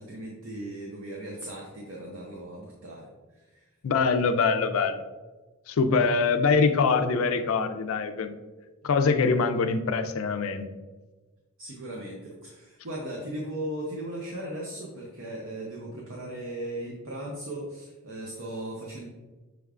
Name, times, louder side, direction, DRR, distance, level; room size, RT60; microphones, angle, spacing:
voice 1, 0.0-3.6 11.6-19.1, right 1 dB, 60° right, -2 dB, 0.7 m, -37 dB
voice 2, 3.8-5.0 5.7-8.3 8.8-10.7, left 4 dB, 65° left, 9 dB, 0.4 m, -24 dB
6.2 x 3.4 x 2.4 m, 1.2 s
head